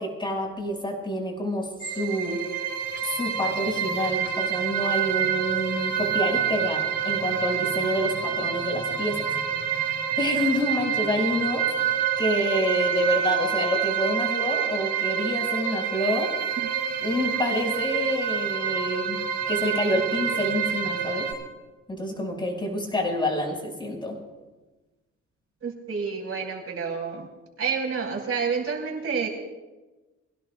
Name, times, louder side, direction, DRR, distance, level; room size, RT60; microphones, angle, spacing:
voice 1, 0.0-1.7 2.0-2.5 3.0-9.2 10.2-16.3 17.0-19.2 19.5-21.3 21.9-24.2, left 1 dB, 15° left, -1 dB, 5.5 m, -27 dB
sound 1, 1.8-21.3, right 8 dB, 80° right, 3.7 m, -27 dB
voice 2, 25.6-27.3 27.6-29.3, right 5 dB, 50° right, 1 dB, 4.8 m, -29 dB
26.5 x 16.5 x 2.3 m, 1.2 s
cardioid pair, 90°, 30 cm